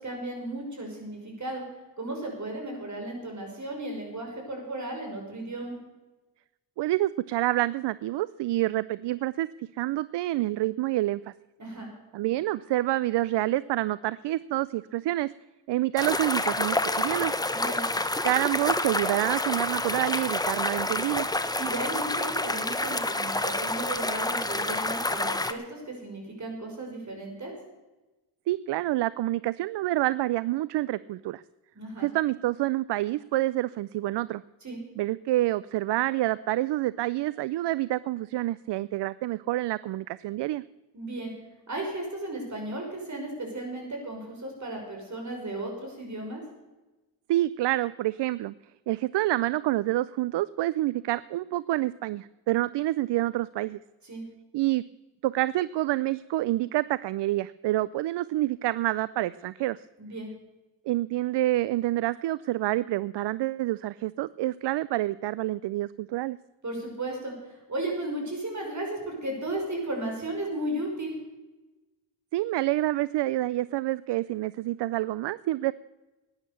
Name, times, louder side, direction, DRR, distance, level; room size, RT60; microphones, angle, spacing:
voice 1, 0.0-1.6 2.0-5.8 11.6-11.9 17.5-17.8 21.6-27.5 31.7-32.1 34.6-34.8 40.9-41.3 41.7-46.4 54.0-54.3 60.0-60.3 66.6-71.2, right 1 dB, 40° right, 1 dB, 5.7 m, -35 dB
voice 2, 6.8-11.3 12.1-15.3 15.7-17.3 18.2-21.3 28.5-31.4 32.0-34.4 35.0-40.6 47.3-48.5 48.9-53.8 54.5-54.8 55.2-59.9 60.9-66.4 72.3-75.7, right 16 dB, 65° right, 19 dB, 0.5 m, -27 dB
sound 1, 16.0-25.5, left 2 dB, 10° left, 1.0 m, -28 dB
13.0 x 9.7 x 7.0 m, 1.1 s
cardioid pair, 65°, 45 cm